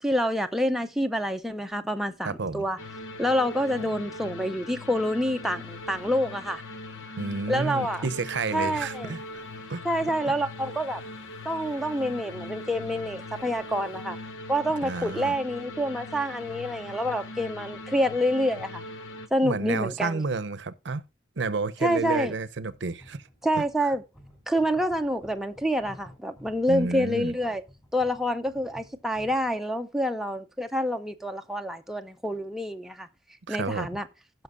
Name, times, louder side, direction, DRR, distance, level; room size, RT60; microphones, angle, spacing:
voice 1, 0.0-2.8 3.2-6.6 7.5-8.0 8.5-9.1 9.8-11.0 11.4-14.2 14.5-18.8 19.3-20.2 21.8-22.3 23.4-24.0 24.5-27.6 27.9-33.1 33.5-34.1, equal, ahead, 0.5 m, -27 dB
voice 2, 2.2-2.7 7.2-9.4 9.7-9.8 14.8-15.3 19.4-21.0 21.4-23.2 23.6-23.7 26.7-27.3 33.5-33.9, right 3 dB, 70° right, 0.6 m, -30 dB
sound 1, 2.8-19.3, left 2 dB, 90° left, 0.9 m, -40 dB
sound 2, 21.9-29.5, equal, 20° left, 3.1 m, -53 dB
16.0 x 5.9 x 2.5 m
head